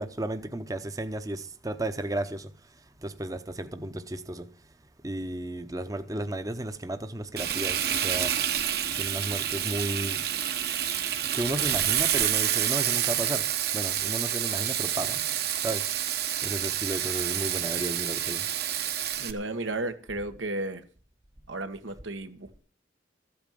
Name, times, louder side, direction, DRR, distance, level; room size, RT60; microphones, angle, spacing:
voice 1, 0.0-4.5 5.0-8.4 8.9-10.3 11.3-13.5 13.7-15.9 16.4-18.5, right 1 dB, 20° right, 0.7 m, -34 dB
Frying (food), 7.4-19.3, right 10 dB, 55° right, 1.1 m, -28 dB
voice 2, 19.2-20.8 21.5-22.6, right 2 dB, 90° right, 1.6 m, -33 dB
14.0 x 8.7 x 7.5 m
head